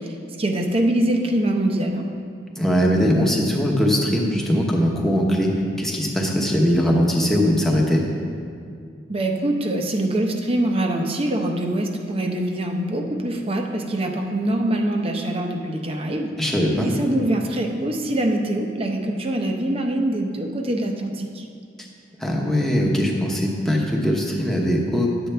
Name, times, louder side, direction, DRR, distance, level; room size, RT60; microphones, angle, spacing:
voice 1, 0.4-2.1 9.1-16.3 16.8-21.4, right 1 dB, 30° right, 3 dB, 0.7 m, -24 dB
voice 2, 2.6-5.5 5.8-8.0 16.4-16.9 22.2-25.3, equal, ahead, -2 dB, 1.0 m, -20 dB
11.0 x 7.9 x 3.3 m, 2.3 s
head